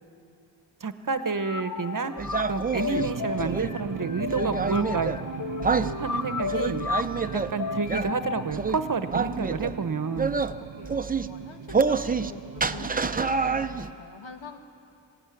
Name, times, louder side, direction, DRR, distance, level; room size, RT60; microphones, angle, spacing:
voice 1, 0.8-2.1 2.5-5.1 5.9-6.8 7.3-10.4, right 5 dB, 45° right, 10 dB, 0.9 m, -29 dB
sound 1, 1.2-8.4, left 6 dB, 45° left, 0.6 m, -34 dB
sound 2, 2.2-3.7 4.3-5.2 5.6-5.9 6.4-7.5 7.9-8.1 8.5-8.8 9.1-9.8 10.2-10.5 10.8-11.3 11.7-12.3 12.6-13.9, right 4 dB, 20° right, 0.5 m, -27 dB
sound 3, 2.9-13.8, right 9 dB, 75° right, 0.7 m, -39 dB
voice 2, 10.6-14.6, left 4 dB, 80° left, 5 dB, 1.7 m, -45 dB
20.5 x 16.0 x 9.7 m, 2.5 s
wide cardioid pair, 95°, 46 cm